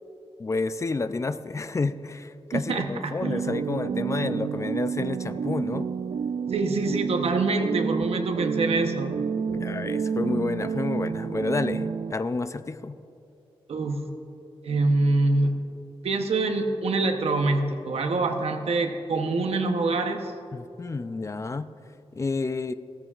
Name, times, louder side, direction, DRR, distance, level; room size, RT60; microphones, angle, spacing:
voice 1, 0.4-5.9 9.5-13.0 20.5-21.7 22.1-22.7, left 3 dB, 30° left, 12 dB, 0.4 m, -30 dB
voice 2, 2.5-3.4 6.5-9.1 13.7-14.1 14.6-15.6 16.0-20.3, right 3 dB, 90° right, 5 dB, 0.9 m, -25 dB
sound 1, 3.2-12.1, right 6 dB, 65° right, 0.3 m, -29 dB
16.0 x 13.5 x 2.4 m, 2.7 s
wide cardioid pair, 120°, 10 cm